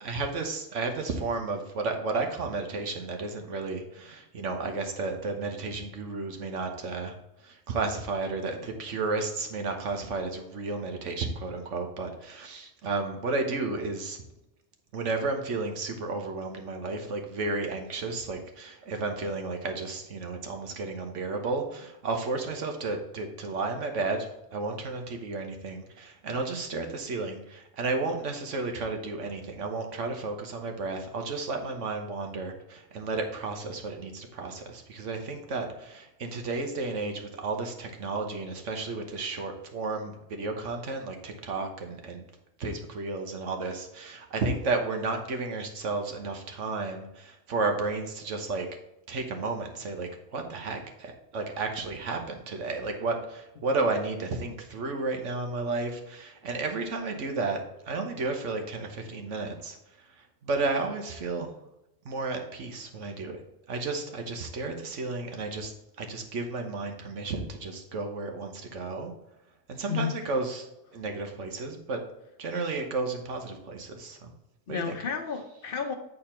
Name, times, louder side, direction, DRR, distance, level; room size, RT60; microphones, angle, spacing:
voice 1, 0.0-7.2 7.4-14.2 14.9-42.3 42.6-48.7 49.1-57.6 57.9-59.8 60.4-61.5 62.0-63.4 63.7-65.7 66.0-69.1 69.7-70.7 70.9-72.0 72.4-74.3 74.7-75.0, right 3 dB, 90° right, 4 dB, 1.5 m, -32 dB
voice 2, 69.9-70.4 74.7-75.9, left 6 dB, 50° left, 5 dB, 1.1 m, -32 dB
8.7 x 4.3 x 4.3 m, 0.90 s
omnidirectional pair, 1.2 m